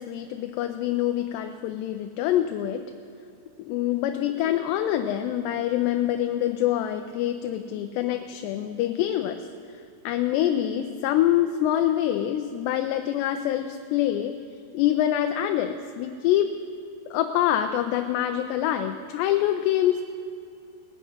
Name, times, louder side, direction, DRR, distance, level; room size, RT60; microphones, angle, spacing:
voice 1, 0.0-2.8 3.6-9.5 9.7-14.4 14.7-16.6 17.1-20.0, left 12 dB, 85° left, 7 dB, 2.7 m, -25 dB
19.0 x 6.6 x 9.3 m, 2.5 s
omnidirectional pair, 5.0 m